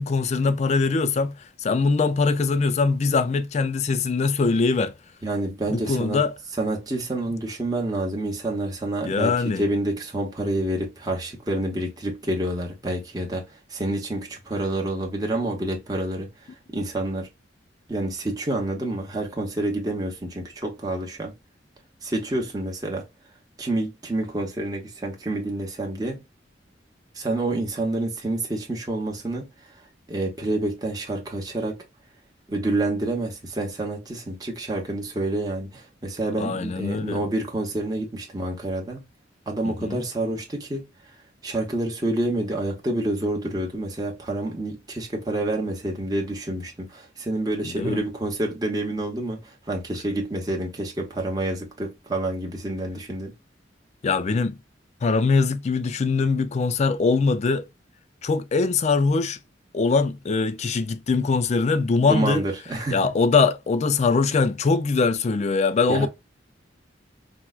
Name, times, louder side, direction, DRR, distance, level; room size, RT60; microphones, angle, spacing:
voice 1, 0.0-1.4 1.6-4.9 5.7-6.3 9.0-9.6 36.4-37.2 39.6-40.0 47.6-48.0 54.0-54.6 55.0-57.7 58.2-59.4 59.7-62.4 62.9-66.1, left 4 dB, 35° left, 0.3 m, -22 dB
voice 2, 5.2-6.2 6.6-16.3 16.7-17.3 17.9-21.3 22.0-23.1 23.6-26.2 27.1-29.5 30.1-31.8 32.5-39.0 39.5-40.9 41.4-53.3 62.1-63.1 65.9-66.1, right 1 dB, 20° right, 0.8 m, -28 dB
4.5 x 2.1 x 2.3 m
head